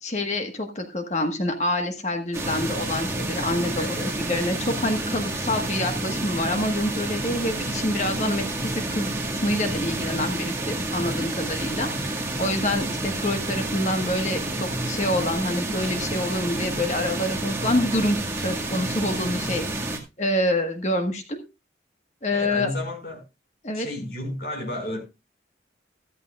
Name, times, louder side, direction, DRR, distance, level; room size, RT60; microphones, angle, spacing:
voice 1, 0.0-3.8 4.2-9.1 9.4-19.7 20.2-21.4 22.2-22.7 23.6-23.9, left 1 dB, 40° left, 5 dB, 1.5 m, -27 dB
sound 1, 2.3-20.0, right 2 dB, 15° right, 2.0 m, -29 dB
voice 2, 3.7-4.1 22.3-23.2 23.7-25.0, left 1 dB, 60° left, 0 dB, 5.4 m, -32 dB
14.0 x 14.0 x 2.4 m, 0.26 s
head